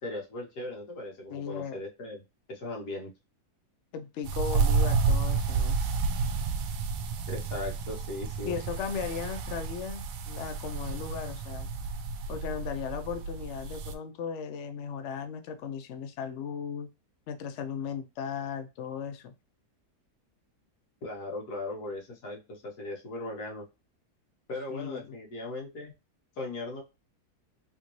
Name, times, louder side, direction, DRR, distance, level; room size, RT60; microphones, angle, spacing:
voice 1, 0.0-2.2 2.5-3.1 7.3-8.6 21.0-23.6 24.5-25.9 26.4-26.8, left 2 dB, 80° left, 0 dB, 1.8 m, -38 dB
voice 2, 1.3-1.8 3.9-5.8 8.5-11.7 12.3-16.9 17.3-19.3 24.7-25.2, left 7 dB, 65° left, 8 dB, 0.7 m, -36 dB
sound 1, 4.2-13.9, right 5 dB, 70° right, 0.9 m, -30 dB
3.6 x 2.6 x 3.0 m, 0.25 s
omnidirectional pair, 1.7 m